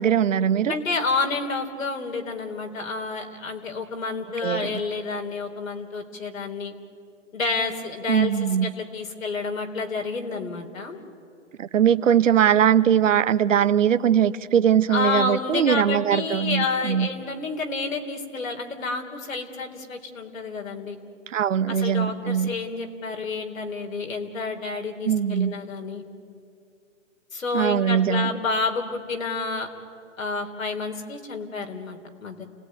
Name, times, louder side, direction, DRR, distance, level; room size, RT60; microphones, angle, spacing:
voice 1, 0.0-0.7 4.4-4.8 8.1-8.7 11.6-17.1 21.3-22.5 25.1-25.5 27.5-28.3, right 9 dB, 70° right, 13 dB, 1.1 m, -21 dB
voice 2, 0.7-6.7 7.3-11.0 14.9-21.0 21.7-26.0 27.3-29.7 30.2-32.4, left 4 dB, 85° left, 3 dB, 4.0 m, -29 dB
29.5 x 18.5 x 9.7 m, 2.5 s
hypercardioid pair, 145°, 39 cm